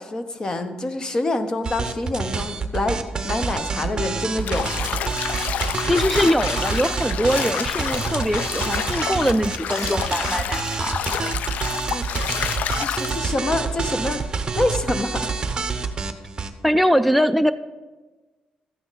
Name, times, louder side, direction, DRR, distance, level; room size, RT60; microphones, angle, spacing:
voice 1, 0.0-3.0 3.2-5.0 11.9-12.5 12.7-14.2 14.5-15.3, left 2 dB, 30° left, 9 dB, 0.9 m, -26 dB
sound 1, 1.6-16.5, right 5 dB, 30° right, 0.8 m, -27 dB
Bathtub (filling or washing), 4.4-13.2, left 9 dB, 75° left, 0.4 m, -29 dB
voice 2, 5.8-11.0 16.6-17.5, equal, ahead, 8 dB, 0.3 m, -22 dB
12.5 x 8.7 x 3.9 m, 1.2 s
cardioid pair, 125°, 3 cm